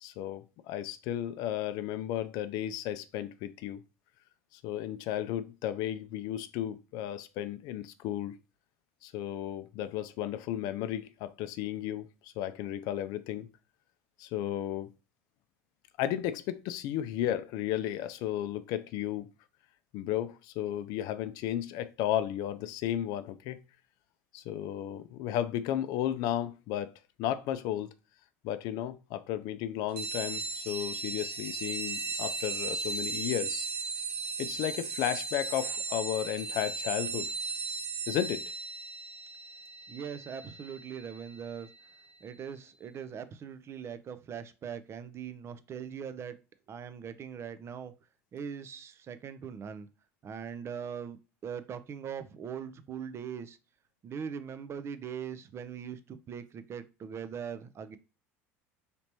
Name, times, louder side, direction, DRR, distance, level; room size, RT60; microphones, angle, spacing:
voice 1, 0.0-3.8 4.5-8.4 9.0-13.5 14.2-14.9 16.0-19.3 19.9-23.6 24.3-26.9 27.2-27.9 28.4-33.7 34.4-37.3 38.1-38.5, left 11 dB, 60° left, 0.3 m, -34 dB
sound 1, 30.0-42.1, right 4 dB, 80° right, 1.2 m, -37 dB
voice 2, 39.9-41.7 42.2-46.4 46.7-47.9 48.3-49.9 50.2-51.2 51.4-53.6 54.0-58.0, right 7 dB, 35° right, 0.4 m, -41 dB
3.3 x 2.9 x 2.8 m
hypercardioid pair, 80°, 8 cm